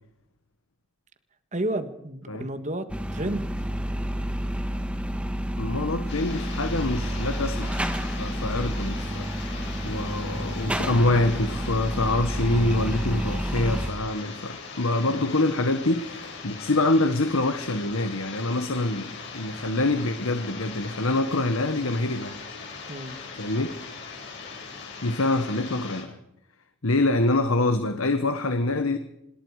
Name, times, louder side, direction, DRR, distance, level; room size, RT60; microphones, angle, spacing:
voice 1, 1.5-2.9 3.1-3.5 22.9-23.2, right 1 dB, 35° right, 9 dB, 1.7 m, -30 dB
sound 1, 2.9-13.9, equal, 5° right, 1.3 m, -30 dB
voice 2, 5.6-7.8 8.2-22.4 23.4-23.7 25.0-26.2 26.8-29.0, left 2 dB, 80° left, 8 dB, 1.5 m, -25 dB
sound 2, 6.1-26.0, left 5 dB, 55° left, 6.6 m, -40 dB
26.0 x 20.5 x 5.0 m, 0.84 s
head